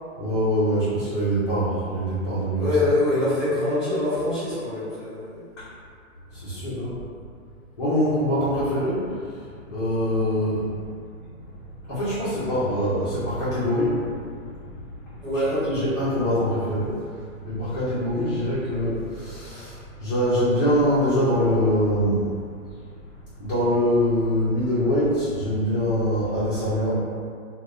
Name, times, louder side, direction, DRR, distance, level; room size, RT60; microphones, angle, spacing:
voice 1, 0.2-2.7 6.3-7.0 7.8-9.1 9.7-10.7 11.9-14.6 15.7-16.9 17.4-22.3 23.4-27.0, equal, 20° left, -13 dB, 0.4 m, -24 dB
voice 2, 2.6-5.4 15.2-15.6, left 2 dB, ahead, -11 dB, 0.8 m, -24 dB
2.9 x 2.2 x 2.3 m, 2.2 s
hypercardioid pair, 130°, 43 cm